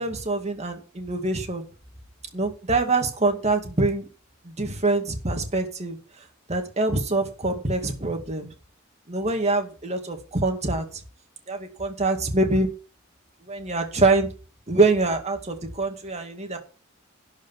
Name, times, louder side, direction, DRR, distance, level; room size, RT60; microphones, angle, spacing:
voice 1, 0.0-1.7 2.3-4.0 4.4-6.0 6.5-8.5 9.1-10.9 11.5-12.7 13.5-14.3 14.7-16.6, right 3 dB, 30° right, 4 dB, 2.3 m, -24 dB
11.5 x 5.2 x 7.4 m, 0.37 s
head